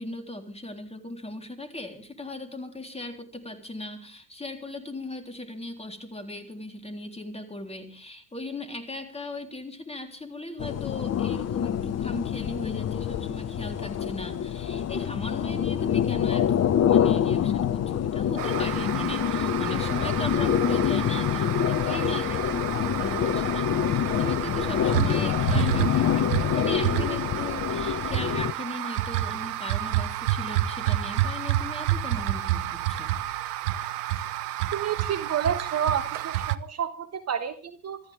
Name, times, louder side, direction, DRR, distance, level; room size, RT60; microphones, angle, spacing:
voice 1, 0.0-33.1, left 1 dB, 15° left, 5 dB, 3.6 m, -38 dB
sound 1, 10.6-28.5, left 9 dB, 35° left, 0.9 m, -26 dB
sound 2, 18.4-36.6, right 13 dB, 80° right, 0.9 m, -29 dB
voice 2, 34.7-38.0, right 8 dB, 35° right, 9 dB, 1.5 m, -29 dB
25.5 x 14.0 x 3.6 m, 0.40 s
hypercardioid pair, 70°, 46 cm